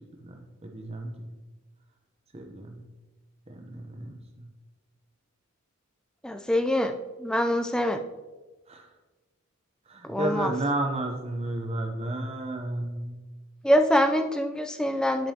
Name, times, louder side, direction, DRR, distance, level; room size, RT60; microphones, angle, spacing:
voice 1, 0.2-1.3 2.3-2.8 3.5-4.5 8.7-8.9 9.9-13.3, right 1 dB, 30° right, 4 dB, 0.7 m, -32 dB
voice 2, 6.2-8.0 10.0-10.5 13.6-15.3, equal, 5° left, 6 dB, 0.4 m, -24 dB
10.5 x 5.3 x 2.8 m, 1.2 s
head